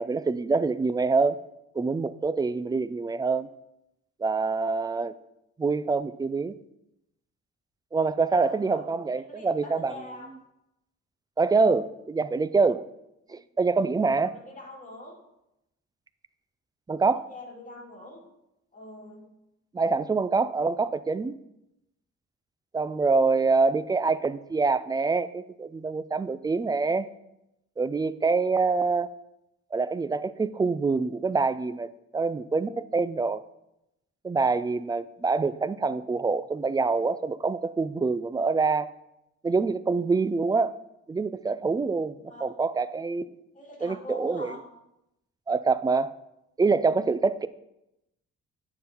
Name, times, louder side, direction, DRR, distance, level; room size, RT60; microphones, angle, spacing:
voice 1, 0.0-1.4 1.7-3.5 4.2-5.1 5.6-6.6 7.9-9.9 11.4-12.9 13.3-14.4 16.9-17.3 19.7-21.3 22.7-27.1 27.8-29.1 29.7-33.4 34.2-38.9 39.4-40.8 41.1-43.3 43.8-44.5 45.5-46.1 46.6-47.5, right 4 dB, 15° right, 15 dB, 0.3 m, -25 dB
voice 2, 8.2-8.8 9.3-10.4 13.3-13.4 14.2-15.2 17.3-18.2 18.7-19.3 42.3-42.5 43.5-44.6, left 2 dB, 25° left, -2 dB, 2.5 m, -44 dB
9.3 x 3.9 x 5.8 m, 0.87 s
cardioid pair, 90°, 30 cm